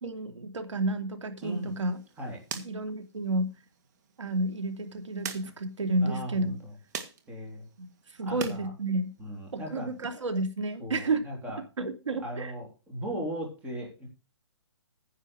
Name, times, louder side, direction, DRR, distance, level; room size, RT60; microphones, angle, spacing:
voice 1, 0.0-2.0 2.6-3.5 4.2-6.5 7.8-7.9 8.2-9.1 9.5-11.2 11.8-12.5, right 2 dB, 85° right, 8 dB, 2.7 m, -31 dB
voice 2, 1.4-1.7 2.2-2.4 6.0-6.5 7.3-7.6 8.2-8.7 9.2-9.9 10.8-11.6 12.2-14.1, equal, 10° right, 0 dB, 3.3 m, -37 dB
sound 1, 1.4-8.6 9.0-10.1, right 7 dB, 35° right, 1.8 m, -44 dB
10.0 x 7.5 x 6.3 m, 0.30 s
hypercardioid pair, 160°, 15 cm